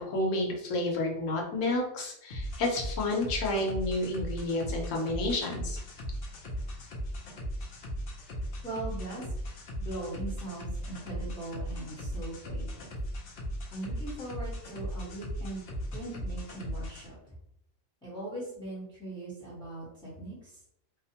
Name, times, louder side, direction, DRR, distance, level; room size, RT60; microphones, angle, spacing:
voice 1, 0.0-5.8, left 2 dB, 85° left, 0 dB, 1.1 m, -30 dB
sound 1, 2.3-17.1, equal, 60° left, 0.7 m, -38 dB
voice 2, 8.6-9.3 9.8-12.9 13.7-15.6 15.9-17.3 18.0-20.6, right 2 dB, 5° left, -7 dB, 0.8 m, -40 dB
2.6 x 2.1 x 2.7 m, 0.74 s
omnidirectional pair, 1.3 m